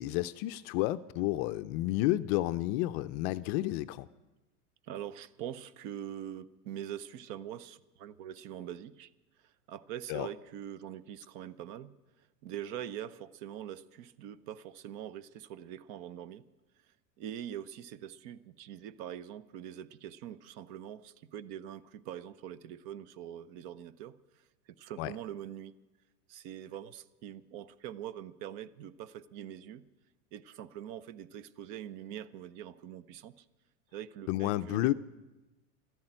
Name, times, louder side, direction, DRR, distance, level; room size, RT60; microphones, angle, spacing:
voice 1, 0.0-4.1 10.1-10.3 25.0-25.1 34.3-34.9, left 16 dB, 45° left, 13 dB, 0.5 m, -31 dB
voice 2, 4.8-9.1 9.4-11.9 12.4-16.4 17.2-24.4 24.8-25.7 26.3-29.8 30.3-33.4 33.9-34.9, right 10 dB, 50° right, 16 dB, 0.8 m, -43 dB
13.0 x 10.5 x 8.9 m, 1.1 s
hypercardioid pair, 115°, 48 cm